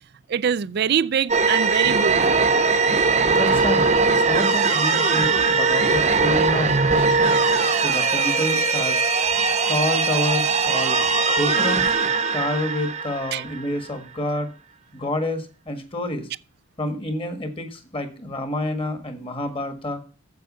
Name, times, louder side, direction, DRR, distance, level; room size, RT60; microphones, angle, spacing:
voice 1, 0.3-2.4 13.3-13.4, right 7 dB, 50° right, 0.4 m, -24 dB
sound 1, 1.3-13.8, right 4 dB, 30° right, 0.8 m, -20 dB
voice 2, 3.3-7.3 7.8-9.0 9.7-11.0 11.3-11.9 12.3-14.5 14.9-16.3 16.8-20.0, left 1 dB, 25° left, 1.5 m, -28 dB
8.0 x 7.6 x 5.4 m
head